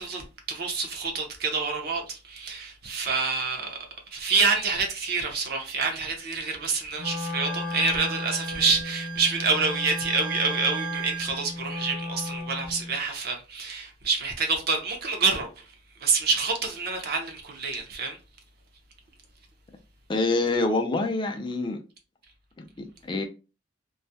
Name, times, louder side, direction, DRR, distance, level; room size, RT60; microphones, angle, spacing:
voice 1, 0.0-3.8 4.1-15.7 16.0-18.2, right 4 dB, 55° right, 0.6 m, -27 dB
Wind instrument woodwind instrument, 7.0-13.0, left 2 dB, 85° left, 0.6 m, -35 dB
Wind instrument woodwind instrument 2, 7.4-11.4, right 11 dB, 75° right, 1.0 m, -38 dB
voice 2, 20.1-21.8 22.6-23.3, left 2 dB, 25° left, 0.4 m, -26 dB
2.3 x 2.1 x 2.6 m
head